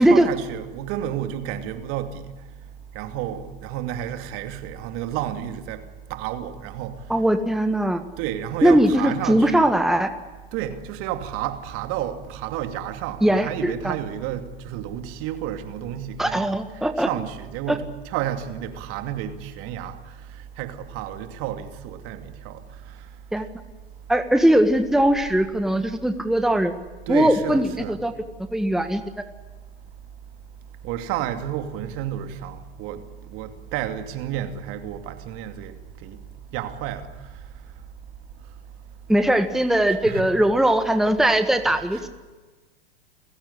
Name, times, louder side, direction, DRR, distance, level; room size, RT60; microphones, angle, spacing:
voice 1, 0.0-2.3 2.9-5.8 6.1-7.0 8.2-9.6 10.5-20.0 20.3-22.6 22.9-23.0 27.1-28.0 30.8-35.8 36.0-36.2 36.5-37.1 39.9-40.3 41.9-42.0, right 11 dB, 45° right, 2.6 m, -31 dB
voice 2, 7.1-8.0 8.6-10.1 13.2-13.9 16.2-17.1 17.7-17.8 23.3-23.4 24.1-26.7 27.1-28.1 28.5-29.0 39.1-42.1, right 1 dB, ahead, 1.6 m, -20 dB
29.0 x 16.0 x 9.9 m
hypercardioid pair, 100°, 30 cm